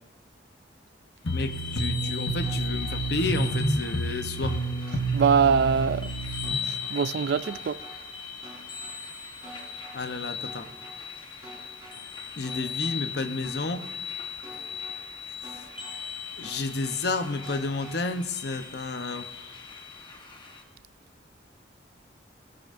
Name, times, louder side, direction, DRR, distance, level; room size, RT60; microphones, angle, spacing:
sound 1, 1.2-6.6, right 2 dB, 85° left, 1.1 m, -29 dB
voice 1, 1.3-4.5 9.9-10.7 12.4-13.8 16.4-19.5, left 3 dB, 60° left, 0.8 m, -31 dB
sound 2, 1.3-20.6, left 6 dB, 25° left, 1.1 m, -38 dB
sound 3, 2.4-3.0 3.4-4.0 4.4-5.0 5.4-6.0 6.4-7.0 7.4-8.0 8.4-9.0 9.4-10.0 10.4-11.0 11.4-12.0 12.4-13.0 13.4-14.0 14.4-15.0 15.4-16.0 16.4-17.0 17.4-18.0, right 1 dB, 20° right, 4.3 m, -46 dB
voice 2, 5.1-6.1 6.9-7.8, right 6 dB, 60° right, 0.3 m, -23 dB
19.5 x 15.5 x 2.6 m
head